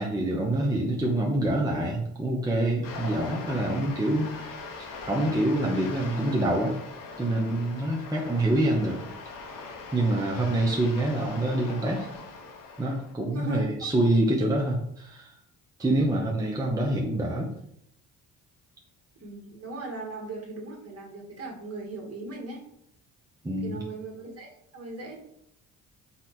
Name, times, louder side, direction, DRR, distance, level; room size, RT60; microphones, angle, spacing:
voice 1, 0.0-6.7 7.2-9.0 9.9-12.1 12.8-15.3 15.8-17.5 23.4-23.8, right 1 dB, 10° right, -2 dB, 0.8 m, -26 dB
sound 1, 2.8-13.1, left 4 dB, 65° left, 1.1 m, -41 dB
voice 2, 13.3-13.9 15.8-16.1 19.2-22.6 23.6-25.2, right 3 dB, 40° right, -1 dB, 1.6 m, -39 dB
4.2 x 2.4 x 4.1 m, 0.74 s
supercardioid pair, 70°, 36 cm